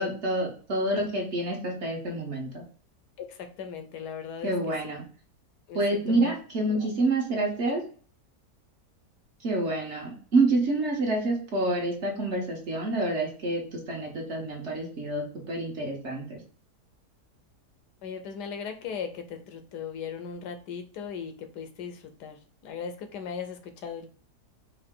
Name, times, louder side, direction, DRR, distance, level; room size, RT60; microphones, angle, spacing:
voice 1, 0.0-2.6 4.4-5.0 5.7-7.9 9.4-16.4, right 2 dB, 50° right, 0 dB, 1.1 m, -28 dB
voice 2, 3.2-4.5 4.8-5.0 5.7-6.3 6.7-6.9 18.0-24.1, left 6 dB, 85° left, 7 dB, 1.3 m, -38 dB
4.8 x 2.7 x 3.6 m, 0.43 s
omnidirectional pair, 1.7 m